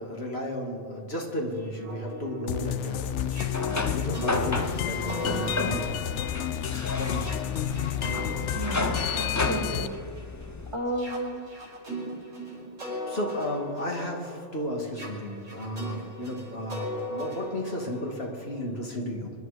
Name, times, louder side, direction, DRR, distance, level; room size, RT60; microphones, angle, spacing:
voice 1, 0.0-3.1 3.6-6.1 6.9-7.6 13.1-19.3, equal, 55° left, 0 dB, 2.3 m, -33 dB
sound 1, 1.6-10.4 10.9-18.7, equal, 80° right, 4.8 m, -40 dB
sound 2, 2.5-9.9, left 10 dB, 70° left, 0.9 m, -30 dB
sound 3, 3.0-10.8, left 2 dB, 20° left, 0.5 m, -33 dB
voice 2, 8.5-10.0 10.7-11.4, right 1 dB, 25° right, 0 dB, 2.3 m, -33 dB
24.5 x 11.5 x 5.0 m, 2.3 s
omnidirectional pair, 1.3 m